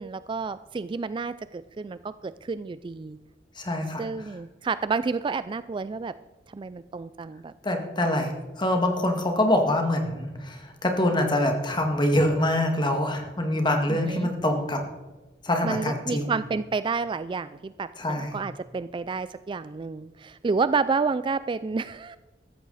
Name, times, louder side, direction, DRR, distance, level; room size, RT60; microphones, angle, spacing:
voice 1, 0.0-3.2 4.0-6.1 6.5-7.5 13.9-14.3 15.6-22.2, right 4 dB, 30° right, 14 dB, 0.3 m, -30 dB
voice 2, 3.6-4.1 7.6-14.9 15.4-16.3 18.0-18.4, left 1 dB, 25° left, 4 dB, 2.0 m, -25 dB
15.5 x 13.5 x 4.1 m, 1.2 s
head